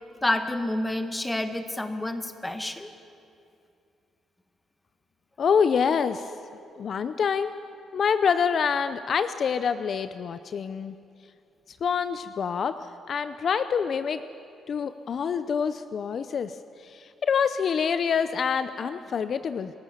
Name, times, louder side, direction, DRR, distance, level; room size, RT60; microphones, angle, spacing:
voice 1, 0.2-2.9, left 1 dB, 10° left, 9 dB, 1.6 m, -29 dB
voice 2, 5.4-6.3 6.8-7.5 7.9-10.9 11.7-14.2 14.7-19.7, left 6 dB, 55° left, 12 dB, 0.6 m, -26 dB
28.0 x 15.0 x 7.3 m, 2.6 s
cardioid pair, 90°, 0 cm